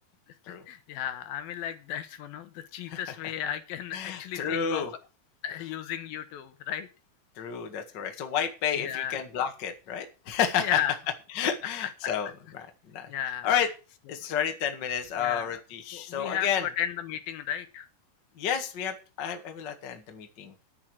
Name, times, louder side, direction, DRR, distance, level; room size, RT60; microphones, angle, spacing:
voice 1, 0.5-4.8 5.4-6.9 8.8-9.2 10.6-10.9 11.8-12.1 13.1-13.6 15.2-15.6 15.9-17.9, left 10 dB, 75° left, 11 dB, 2.6 m, -34 dB
voice 2, 3.9-4.9 7.4-10.8 11.3-12.3 12.5-12.7 12.9-13.1 13.4-13.7 14.1-16.7 18.4-20.5, left 8 dB, 45° left, 5 dB, 1.4 m, -30 dB
10.5 x 9.9 x 6.4 m, 0.33 s
omnidirectional pair, 4.7 m